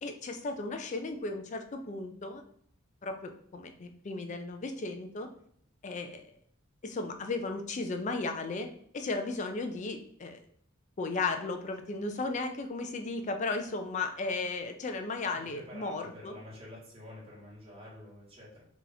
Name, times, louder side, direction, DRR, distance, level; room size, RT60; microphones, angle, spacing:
voice 1, 0.0-2.4 3.0-5.3 5.8-6.3 6.8-8.7 8.9-10.4 11.0-16.3, left 3 dB, 35° left, 5 dB, 0.4 m, -35 dB
voice 2, 15.5-18.6, left 1 dB, 30° right, -7 dB, 1.2 m, -48 dB
2.9 x 2.5 x 3.9 m, 0.64 s
head